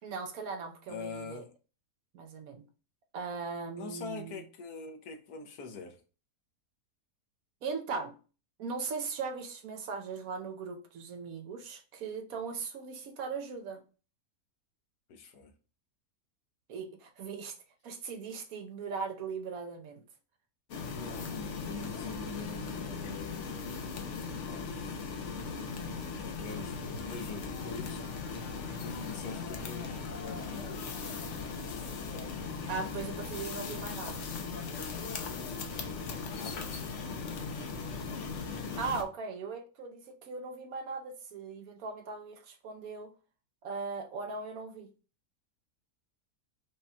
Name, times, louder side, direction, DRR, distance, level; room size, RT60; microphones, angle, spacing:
voice 1, 0.0-1.4 2.1-2.6 3.1-4.4 7.6-8.1 8.6-13.8 16.7-17.6 17.8-20.0 32.7-34.3 38.8-43.1 43.6-44.9, right 5 dB, 65° right, 1.1 m, -39 dB
voice 2, 0.9-1.5 3.8-6.0 15.1-15.5 20.9-24.1 24.5-25.3 26.2-28.0 28.8-30.9 36.1-37.4, left 4 dB, 75° left, 1.3 m, -45 dB
sound 1, 20.7-39.0, left 5 dB, 60° left, 0.9 m, -38 dB
5.1 x 2.3 x 4.1 m
omnidirectional pair, 1.7 m